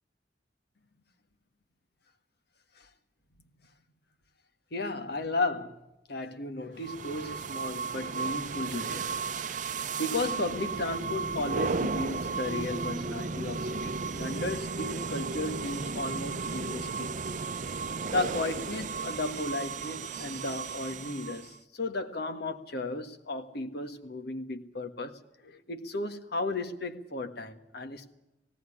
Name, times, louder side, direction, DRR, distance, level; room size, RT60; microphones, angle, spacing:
voice 1, 4.7-5.8 6.1-9.1 10.0-17.1 18.0-28.1, left 2 dB, 60° left, 1.6 m, -34 dB
sound 1, 6.8-21.6, right 4 dB, 45° right, 0.7 m, -34 dB
18.5 x 17.0 x 9.9 m
head